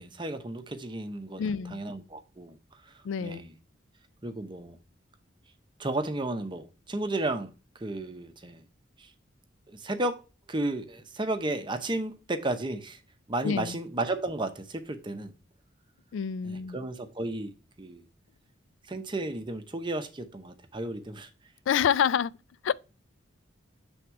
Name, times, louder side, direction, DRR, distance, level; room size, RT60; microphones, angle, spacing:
voice 1, 0.0-2.6 2.9-3.5 4.2-4.8 5.8-8.6 9.0-9.1 9.7-10.2 10.5-13.0 13.3-15.3 16.4-17.5 17.8-18.0 18.9-21.3, right 2 dB, 25° right, 0.7 m, -33 dB
voice 2, 1.4-1.8 3.0-3.4 13.4-13.8 16.1-16.8 21.7-22.3 22.6-22.7, left 7 dB, 75° left, 0.3 m, -27 dB
7.7 x 3.6 x 4.5 m
head